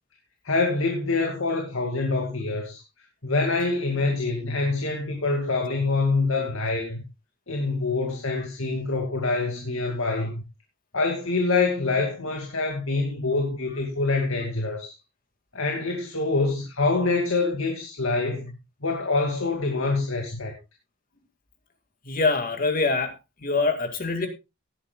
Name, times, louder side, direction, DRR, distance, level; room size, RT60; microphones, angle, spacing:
voice 1, 0.4-2.8 3.2-7.0 7.5-10.4 10.9-14.9 15.5-18.5 18.8-20.5, left 3 dB, 80° left, 2.3 m, -25 dB
voice 2, 22.1-23.1 23.4-24.3, left 3 dB, 45° left, 2.1 m, -24 dB
17.5 x 10.0 x 2.3 m
head